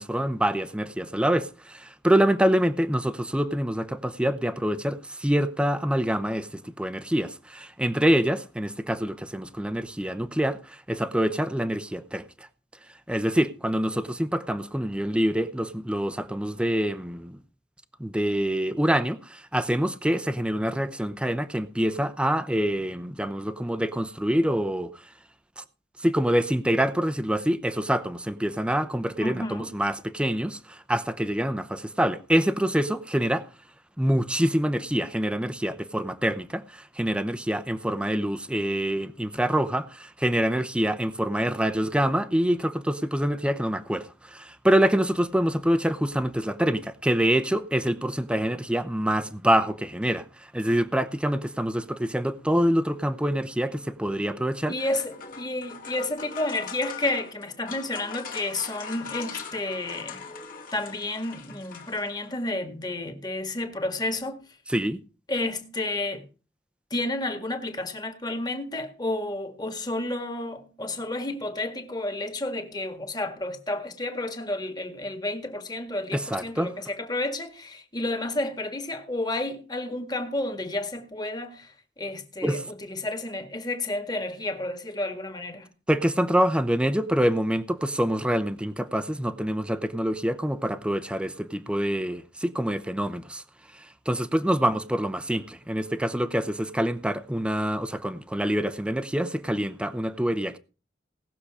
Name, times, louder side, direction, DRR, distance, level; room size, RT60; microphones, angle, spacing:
voice 1, 0.0-12.2 13.1-17.4 18.0-24.9 25.6-25.7 26.0-33.5 34.0-50.2 50.5-54.7 64.7-65.0 76.1-76.7 82.4-82.6 85.9-93.4 93.7-100.6, equal, 5° right, 0.7 m, -26 dB
voice 2, 29.2-29.7 54.7-60.2 60.7-64.4 65.3-66.2 66.9-85.7, left 2 dB, 25° left, 1.8 m, -31 dB
sound 1, 54.8-62.4, left 6 dB, 50° left, 2.1 m, -41 dB
18.5 x 6.8 x 4.9 m
head